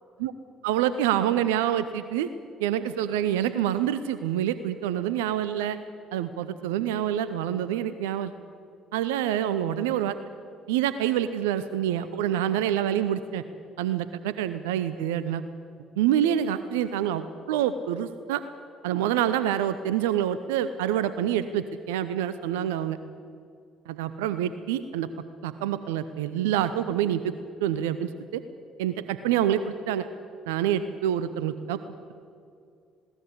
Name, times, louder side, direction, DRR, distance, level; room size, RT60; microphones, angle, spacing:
voice 1, 0.6-2.3 2.6-5.8 6.1-8.3 8.9-10.2 10.7-13.4 13.8-15.4 16.0-18.4 18.8-23.0 23.9-25.1 25.4-27.3 27.6-28.4 28.8-30.1 30.5-31.8, right 10 dB, 75° right, 13 dB, 0.7 m, -27 dB
20.0 x 18.0 x 8.2 m, 2.4 s
figure-of-eight pair, 50°, 0 cm